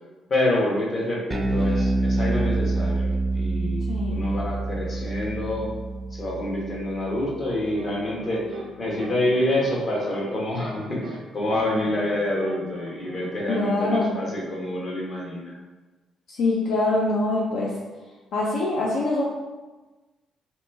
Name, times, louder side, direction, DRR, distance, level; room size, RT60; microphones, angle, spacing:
voice 1, 0.3-5.7 6.1-15.6, left 1 dB, 45° left, -3 dB, 1.1 m, -27 dB
Bass guitar, 1.3-7.8, right 2 dB, 15° right, 0.4 m, -27 dB
voice 2, 3.9-4.3 13.5-14.2 16.3-17.8 18.3-19.2, left 2 dB, 75° left, -4 dB, 0.5 m, -24 dB
sound 1, 7.6-8.7 9.0-13.7, right 3 dB, 85° right, 0.4 m, -40 dB
3.0 x 3.0 x 3.4 m, 1.2 s
cardioid pair, 90°, 0 cm